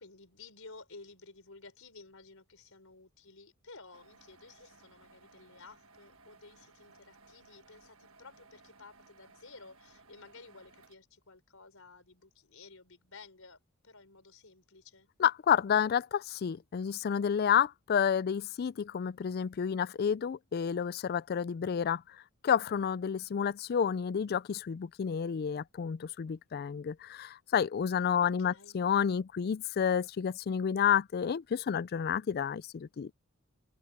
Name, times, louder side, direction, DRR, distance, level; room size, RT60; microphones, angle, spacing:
voice 1, 0.0-15.1 28.2-28.8, left 3 dB, 75° left, 4.7 m, -54 dB
sound 1, 3.9-10.9, right 3 dB, 70° right, 1.5 m, -60 dB
voice 2, 15.2-22.0 22.4-33.1, left 8 dB, 45° left, 0.3 m, -30 dB
head